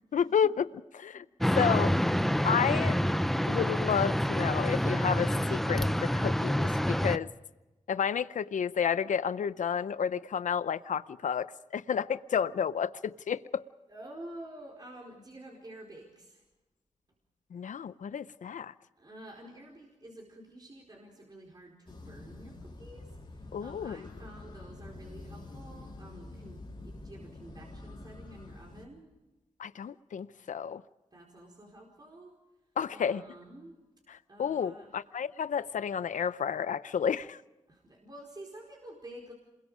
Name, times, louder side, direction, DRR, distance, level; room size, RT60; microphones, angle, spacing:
voice 1, 0.1-0.7 1.0-1.2 1.6-1.9 2.4-3.0 3.5-7.3 7.9-11.5 11.7-13.6 17.5-18.7 23.5-24.1 29.6-30.8 32.8-33.2 34.1-37.4, left 7 dB, 85° left, 15 dB, 0.6 m, -31 dB
sound 1, 1.4-7.2, equal, ahead, 0.7 m, -27 dB
voice 2, 13.9-16.4 19.0-23.1 23.6-29.1 31.1-32.3 32.9-33.8 34.3-34.9 37.7-39.3, right 1 dB, 35° right, -1 dB, 4.6 m, -49 dB
sound 2, 21.9-28.8, left 2 dB, 40° left, 4.0 m, -47 dB
27.5 x 21.5 x 5.0 m, 1.0 s
wide cardioid pair, 95°, 13 cm